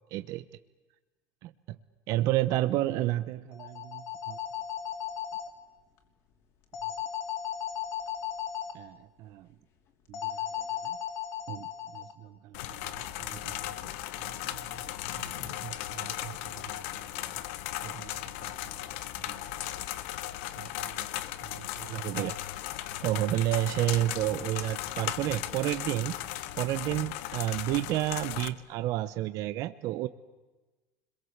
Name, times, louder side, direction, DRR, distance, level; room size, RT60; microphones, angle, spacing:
voice 1, 0.1-0.4 2.1-4.4 8.7-9.5 10.1-10.3 10.8-11.0 11.5-11.7 11.9-13.7 14.2-16.7 17.8-18.5 19.2-19.3 20.6-21.0 21.4-22.4 23.0-26.2 26.6-30.1, right 15 dB, 50° right, 11 dB, 0.8 m, -32 dB
sound 1, 3.5-5.5 6.7-8.7 10.1-12.1, left 9 dB, 45° left, 3.3 m, -36 dB
sound 2, 12.5-28.5, left 14 dB, 80° left, 1.4 m, -37 dB
30.0 x 22.0 x 8.0 m, 1.2 s
cardioid pair, 165°, 7 cm